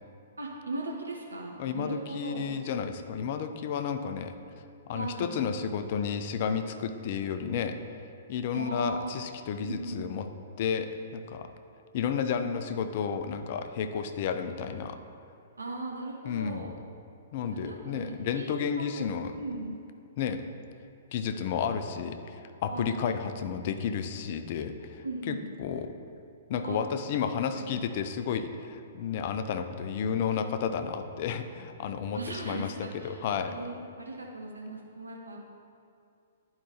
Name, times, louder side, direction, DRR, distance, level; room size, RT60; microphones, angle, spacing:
voice 1, 0.4-2.6 4.9-5.4 8.5-9.1 9.6-10.1 15.6-16.7 17.5-19.1 19.4-19.8 22.7-23.2 25.0-25.5 26.6-26.8 27.5-27.8 32.1-33.2 33.5-35.5, right 2 dB, 80° right, -1 dB, 0.8 m, -38 dB
voice 2, 1.6-4.3 4.9-7.8 8.3-10.3 10.6-11.5 11.9-15.0 16.3-16.7 17.3-19.3 20.2-20.4 21.1-25.9 26.5-32.2 32.5-32.7 33.0-33.5, left 7 dB, 45° left, 9 dB, 0.5 m, -32 dB
11.0 x 4.8 x 2.8 m, 2.5 s
figure-of-eight pair, 115°, 0 cm